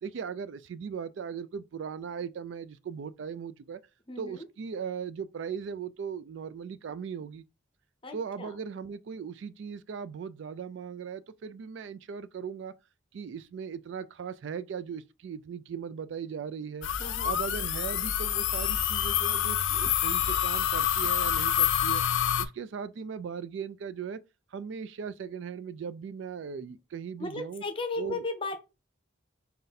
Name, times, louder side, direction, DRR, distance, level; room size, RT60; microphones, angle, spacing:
voice 1, 0.0-3.8 4.2-7.4 8.1-12.7 13.1-16.9 17.2-22.0 22.4-24.2 24.5-27.6 28.0-28.3, right 6 dB, 65° right, 0.3 m, -38 dB
voice 2, 4.1-4.5 8.0-8.5 17.0-17.4 27.2-28.6, left 3 dB, 25° left, 0.7 m, -35 dB
sound 1, 16.8-22.5, left 10 dB, 70° left, 0.4 m, -27 dB
4.2 x 2.6 x 3.9 m
head